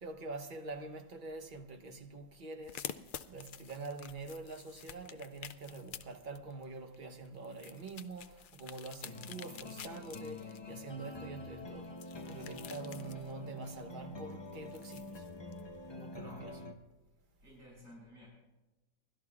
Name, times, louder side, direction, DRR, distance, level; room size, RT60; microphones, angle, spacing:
voice 1, 0.0-2.8 3.3-15.3 15.9-16.6, right 3 dB, 40° right, 1.1 m, -45 dB
sound 1, 2.6-16.1, left 9 dB, 85° left, 0.4 m, -50 dB
sound 2, 9.0-16.7, left 2 dB, 30° left, 0.5 m, -46 dB
voice 2, 16.2-16.6 17.4-18.4, equal, 80° right, 6.2 m, -55 dB
28.5 x 12.5 x 2.4 m
omnidirectional pair, 1.5 m